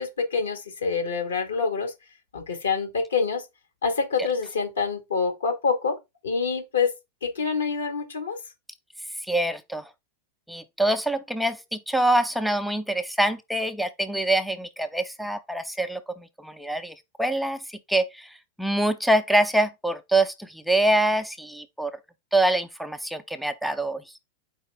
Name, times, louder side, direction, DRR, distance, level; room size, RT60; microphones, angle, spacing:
voice 1, 0.0-1.9 2.3-3.4 3.8-6.0 6.2-6.9 7.2-8.4, left 5 dB, 70° left, 1.2 m, -26 dB
voice 2, 9.2-9.9 10.5-21.9 22.3-24.0, right 1 dB, ahead, 0.4 m, -25 dB
4.7 x 2.9 x 3.3 m
figure-of-eight pair, 90°, 0 cm